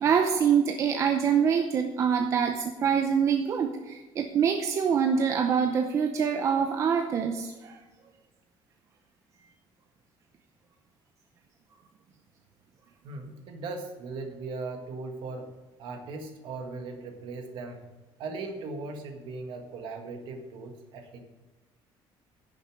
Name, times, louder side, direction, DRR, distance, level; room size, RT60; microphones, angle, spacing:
voice 1, 0.0-7.8, right 7 dB, 30° right, 5 dB, 0.6 m, -25 dB
voice 2, 13.0-15.5 15.8-17.8 18.2-21.2, right 3 dB, 60° right, 5 dB, 1.6 m, -38 dB
11.0 x 6.7 x 6.2 m, 1.2 s
cardioid pair, 180°, 9 cm